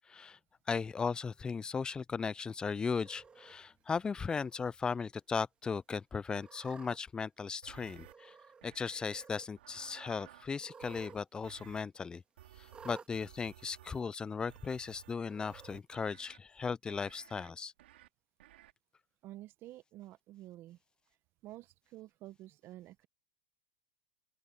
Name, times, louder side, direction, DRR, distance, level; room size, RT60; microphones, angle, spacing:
voice 1, 0.7-8.3 8.6-12.2 12.8-17.7, left 5 dB, 15° left, 0.4 m, -37 dB
Cat, 2.9-3.5 4.3-4.7 5.1-5.2 6.3-7.0 8.0-8.6 8.9-9.5 10.5-11.2 11.5-11.6 12.7-13.1 14.0-14.1 15.2-15.8, right 5 dB, 15° right, 2.3 m, -54 dB
sound 1, 7.6-8.1 8.6-9.3 9.6-10.5 10.8-11.1 11.4-11.8 12.4-14.1 14.5-15.1 15.5-16.4 16.9-17.5 17.8-18.1 18.4-18.7, right 14 dB, 75° right, 4.9 m, -56 dB
voice 2, 19.2-20.8 21.4-23.1, right 15 dB, 40° right, 1.2 m, -50 dB
open air
hypercardioid pair, 125°, 6 cm